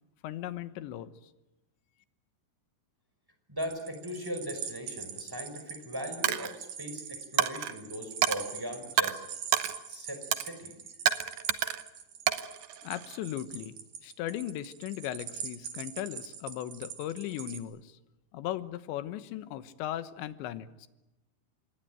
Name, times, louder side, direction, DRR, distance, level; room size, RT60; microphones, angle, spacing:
voice 1, 0.2-1.1 12.8-13.8 14.0-18.0 18.3-20.9, left 12 dB, 80° left, 13 dB, 3.4 m, -37 dB
voice 2, 3.5-9.2 9.9-10.7, equal, 5° right, 6 dB, 4.7 m, -39 dB
sound 1, 3.6-17.6, right 7 dB, 55° right, 3.0 m, -44 dB
Coin (dropping), 6.2-6.5 7.4-7.7 8.2-8.4 9.0-9.1 9.5-9.7 10.3-10.5 11.1-11.8 12.3-13.2, right 11 dB, 80° right, 1.8 m, -28 dB
27.0 x 21.5 x 9.1 m, 0.97 s
omnidirectional pair, 5.1 m